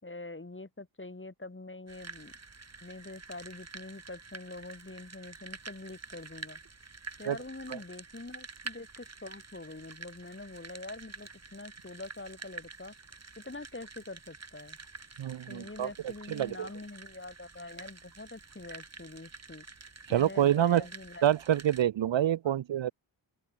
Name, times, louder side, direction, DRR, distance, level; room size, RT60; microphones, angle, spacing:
voice 1, 0.0-2.3 2.8-6.6 7.2-12.9 13.4-14.8 15.5-19.7 20.1-21.2 22.4-22.6, left 2 dB, 25° left, 6.9 m, -45 dB
sound 1, 1.9-21.8, right 4 dB, 30° right, 3.1 m, -48 dB
voice 2, 15.2-15.9 16.3-16.7 20.1-20.8 21.2-22.9, right 11 dB, 70° right, 1.0 m, -27 dB
open air
supercardioid pair, 45°, 47 cm